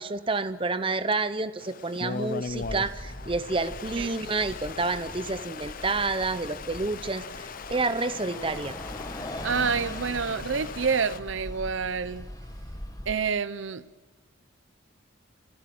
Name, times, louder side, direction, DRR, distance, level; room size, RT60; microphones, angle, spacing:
voice 1, 0.0-8.7, right 3 dB, 25° right, 12 dB, 0.7 m, -29 dB
Stream, 1.6-11.2, left 5 dB, 40° left, 0.6 m, -39 dB
Bus, 2.5-13.1, left 1 dB, 20° left, 1.7 m, -41 dB
voice 2, 9.4-12.3 13.1-13.8, right 5 dB, 65° right, 16 dB, 0.7 m, -28 dB
30.0 x 15.0 x 7.7 m, 1.3 s
head